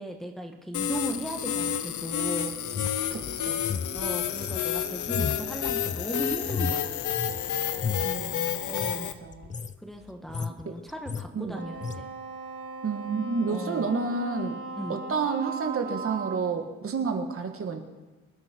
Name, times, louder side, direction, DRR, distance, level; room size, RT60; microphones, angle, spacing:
voice 1, 0.0-2.6 3.9-6.9 8.7-9.1 9.8-12.1 13.5-13.9 14.8-15.0, right 1 dB, ahead, 3 dB, 1.3 m, -37 dB
sound 1, 0.7-9.1, left 9 dB, 85° left, 0.9 m, -30 dB
sound 2, 2.7-7.4 7.7-8.2 8.7-9.0 9.3-9.8 10.1-10.6 10.9-11.3 11.8-12.0, left 5 dB, 25° left, 0.5 m, -34 dB
voice 2, 3.1-3.6 8.0-8.6 9.0-9.5 10.6-10.7 11.3-11.6 12.8-14.6 14.9-17.8, right 5 dB, 50° right, 5 dB, 1.6 m, -30 dB
Wind instrument woodwind instrument, 11.5-16.6, right 3 dB, 85° right, 5.4 m, -38 dB
24.5 x 9.7 x 4.5 m, 1.2 s
cardioid pair, 115°, 29 cm